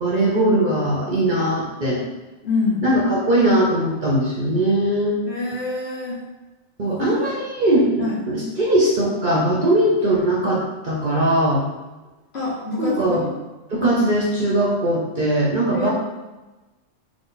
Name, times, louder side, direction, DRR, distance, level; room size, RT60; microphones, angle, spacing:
voice 1, 0.0-2.0 2.8-5.1 6.8-11.6 12.8-13.2 13.7-15.9, right 1 dB, 50° right, -4 dB, 0.7 m, -20 dB
voice 2, 2.4-2.8 5.3-6.2 7.0-7.1 8.0-8.2 12.3-13.3 15.7-15.9, left 3 dB, 55° left, -6 dB, 1.4 m, -25 dB
4.1 x 2.6 x 3.9 m, 1.1 s
omnidirectional pair, 1.3 m